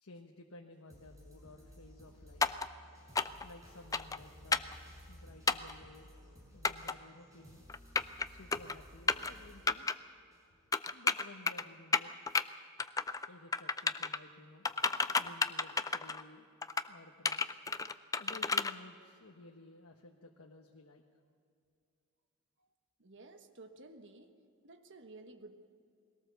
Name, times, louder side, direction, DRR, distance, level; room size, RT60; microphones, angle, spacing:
voice 1, 0.0-2.5 3.4-4.8 5.1-6.1 6.5-7.6 8.3-10.0 10.9-12.2 13.3-14.6 15.2-16.5 16.9-17.5 18.2-21.0, left 2 dB, 70° left, 1 dB, 1.3 m, -55 dB
sound 1, 0.9-10.9 11.4-11.5, equal, 15° right, 5.6 m, -56 dB
sound 2, 2.4-2.7 3.1-3.4 3.9-4.2 4.5-4.7 5.5-5.7 6.6-6.9 7.7-8.2 8.5-8.7 9.1-9.3 9.7-9.9 10.7-11.6 11.9-12.4 12.8-13.3 13.5-14.2 14.6-16.2 16.6-16.9 17.2-18.7, left 4 dB, 15° left, 0.4 m, -31 dB
voice 2, 23.0-24.3 24.6-25.7, right 2 dB, 60° right, 6 dB, 1.3 m, -53 dB
21.0 x 18.0 x 6.9 m, 2.4 s
head